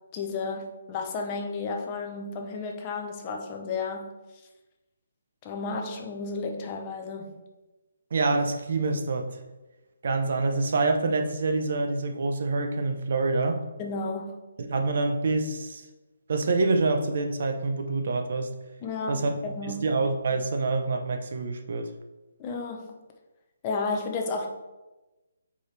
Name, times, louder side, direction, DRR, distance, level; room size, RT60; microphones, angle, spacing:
voice 1, 0.1-4.1 5.4-7.4 13.8-14.4 18.8-19.8 22.4-23.0 23.6-24.5, left 4 dB, 15° left, 2 dB, 0.6 m, -32 dB
voice 2, 8.1-9.3 10.0-13.7 14.6-15.9 16.3-18.5 19.1-21.9, right 3 dB, 40° right, 5 dB, 0.7 m, -26 dB
7.6 x 4.9 x 3.3 m, 1.1 s
hypercardioid pair, 180°, 0 cm